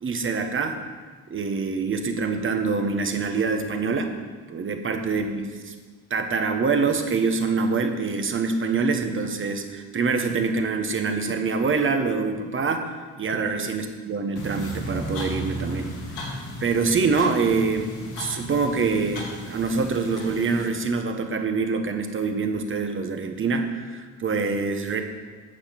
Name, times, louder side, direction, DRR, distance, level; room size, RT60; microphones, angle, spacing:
voice 1, 0.0-0.8 1.3-4.1 4.5-5.4 6.1-12.9 13.2-15.9 16.6-25.0, right 4 dB, 35° right, 5 dB, 1.2 m, -25 dB
sound 1, 14.4-20.6, equal, 90° left, 2.5 m, -34 dB
8.7 x 6.7 x 5.9 m, 1.4 s
supercardioid pair, 80°, 34 cm